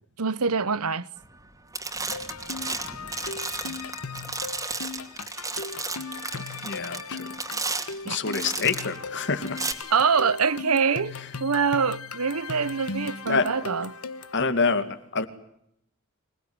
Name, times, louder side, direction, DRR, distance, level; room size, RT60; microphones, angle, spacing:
voice 1, 0.2-1.1 8.1-8.2 9.9-11.1 11.4-13.9, right 5 dB, 80° right, 1.0 m, -24 dB
sound 1, 1.2-1.5 1.7-9.0 9.5-9.7, right 3 dB, 15° right, 2.7 m, -33 dB
sound 2, 2.1-14.4, left 4 dB, 85° left, 1.4 m, -37 dB
voice 2, 6.3-7.3 8.0-9.6 13.3-13.5 14.3-15.3, left 4 dB, 55° left, 2.4 m, -27 dB
26.0 x 20.0 x 9.7 m
head